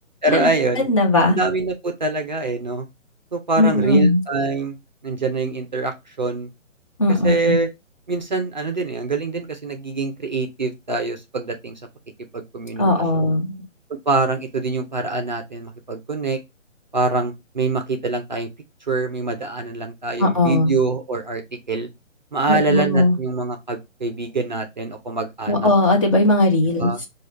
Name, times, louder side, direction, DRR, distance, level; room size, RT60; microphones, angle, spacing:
voice 1, 0.2-0.9 1.3-2.8 3.3-4.7 5.0-6.5 7.2-7.7 8.1-11.8 12.3-12.9 13.1-13.3 13.9-16.4 16.9-18.5 18.9-21.4 21.7-21.9 22.3-25.7 26.8-27.0, right 3 dB, 35° right, 0.5 m, -24 dB
voice 2, 0.8-1.4 3.6-4.2 7.0-7.5 12.8-13.6 20.2-20.7 22.5-23.1 25.5-27.1, left 1 dB, 25° left, 0.7 m, -18 dB
4.8 x 2.3 x 3.1 m
figure-of-eight pair, 150°, 39 cm